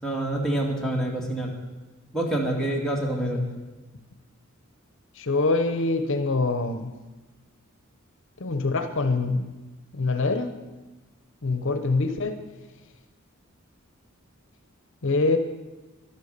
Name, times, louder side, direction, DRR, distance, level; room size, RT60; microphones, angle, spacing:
voice 1, 0.0-1.5 2.1-3.4, right 1 dB, 5° left, -2 dB, 2.3 m, -27 dB
voice 2, 5.2-6.9 8.4-9.5 9.9-10.5 11.4-12.4 15.0-15.4, left 3 dB, 65° left, 9 dB, 0.9 m, -25 dB
12.0 x 12.0 x 6.7 m, 1.2 s
head